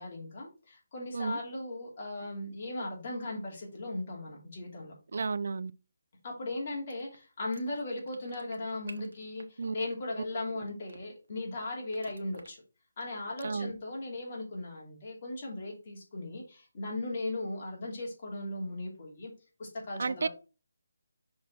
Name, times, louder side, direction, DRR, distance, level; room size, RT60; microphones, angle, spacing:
voice 1, 0.0-4.9 6.2-12.6 13.0-19.3 19.6-20.3, left 2 dB, 35° left, 2.7 m, -37 dB
voice 2, 5.1-5.7 9.6-9.8 13.4-13.7 20.0-20.3, right 4 dB, 55° right, 0.4 m, -32 dB
sound 1, 6.9-11.3 11.9-12.5, right 3 dB, 75° right, 1.3 m, -51 dB
6.1 x 4.1 x 4.4 m
hypercardioid pair, 170°, 0 cm